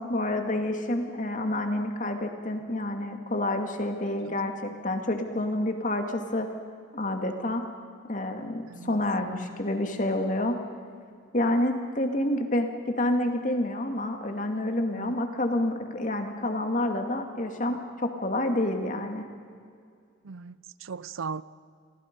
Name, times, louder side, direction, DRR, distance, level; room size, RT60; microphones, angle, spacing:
voice 1, 0.0-6.5 6.9-7.6 8.1-10.6 11.3-19.2, left 1 dB, 40° left, 2.2 m, -28 dB
voice 2, 8.7-9.0 14.9-15.2 20.2-21.4, right 5 dB, 85° right, 0.6 m, -38 dB
29.5 x 23.5 x 5.3 m
head